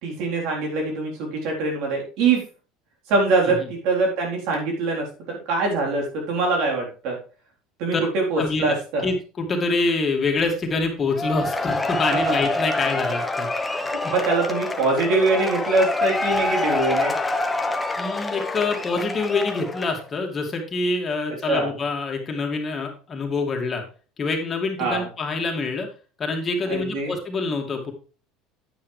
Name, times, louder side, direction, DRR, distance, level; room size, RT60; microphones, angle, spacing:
voice 1, 0.0-2.4 3.1-7.2 7.8-9.0 12.3-12.4 13.8-17.1 21.5-21.7 24.8-25.1 26.7-27.1, right 3 dB, 65° right, 0 dB, 3.8 m, -23 dB
voice 2, 8.4-8.8 9.0-13.5 18.0-23.8 24.2-25.9 26.2-27.9, left 3 dB, 30° left, 2 dB, 2.3 m, -26 dB
Cheering / Applause / Crowd, 11.1-20.1, left 2 dB, 10° left, 1.0 m, -26 dB
9.3 x 8.8 x 3.3 m, 0.36 s
supercardioid pair, 115°, 0 cm